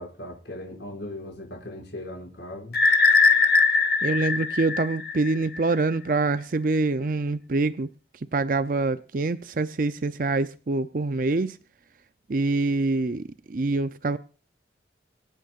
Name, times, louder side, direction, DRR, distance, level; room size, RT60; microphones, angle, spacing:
voice 1, 0.0-2.8, left 1 dB, 75° left, 5.9 m, -38 dB
sound 1, 2.7-5.6, left 4 dB, 55° left, 1.2 m, -21 dB
voice 2, 4.0-7.9 8.3-11.6 12.3-14.2, right 3 dB, 50° right, 0.5 m, -25 dB
26.5 x 9.1 x 2.5 m
head